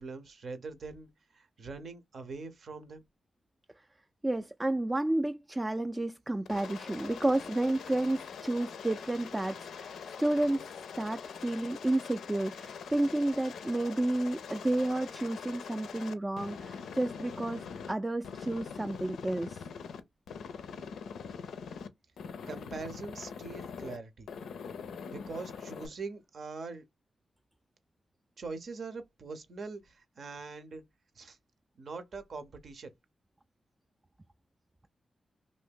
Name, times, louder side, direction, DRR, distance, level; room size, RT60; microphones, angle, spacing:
voice 1, 0.0-3.0 22.5-24.3 25.1-26.8 28.4-30.8 31.2-31.4 31.8-32.9, right 4 dB, 65° right, 0.7 m, -43 dB
voice 2, 4.2-10.7 11.0-19.6, right 1 dB, 20° right, 0.3 m, -31 dB
Aircraft, 6.5-17.9 18.2-20.0 20.3-21.9 22.2-24.0 24.3-25.9, left 6 dB, 85° left, 0.4 m, -43 dB
2.6 x 2.6 x 3.5 m
supercardioid pair, 45°, 0 cm